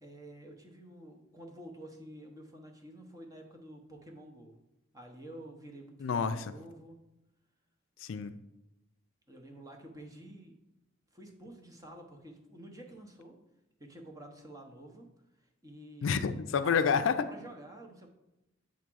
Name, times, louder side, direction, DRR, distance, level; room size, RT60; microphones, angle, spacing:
voice 1, 0.0-4.5 4.9-7.0 9.3-10.5 11.1-13.4 13.8-15.1 15.4-16.2 16.6-16.9 17.3-18.1, right 1 dB, 15° right, 2 dB, 0.9 m, -49 dB
voice 2, 6.0-6.5 8.0-8.3 16.0-17.3, left 6 dB, 70° left, 10 dB, 0.4 m, -29 dB
7.3 x 3.6 x 6.1 m, 0.94 s
head